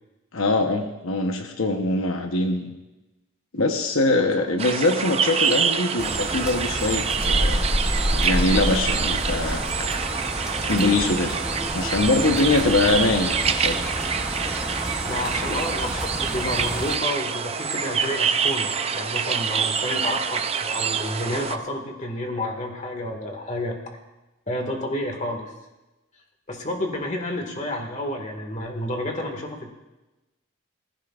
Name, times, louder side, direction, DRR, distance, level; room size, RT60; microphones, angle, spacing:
voice 1, 0.3-2.7 3.5-7.7 8.1-9.9 10.6-11.4 11.7-13.9 15.5-15.6, left 2 dB, 85° left, 4 dB, 1.0 m, -23 dB
sound 1, 4.6-21.6, right 6 dB, 30° right, 0.5 m, -26 dB
sound 2, 6.0-16.9, equal, 5° right, 0.8 m, -28 dB
voice 2, 15.0-23.8 24.5-25.5 26.5-29.7, left 1 dB, 35° left, 3 dB, 1.8 m, -30 dB
19.5 x 15.0 x 2.5 m, 1.1 s
head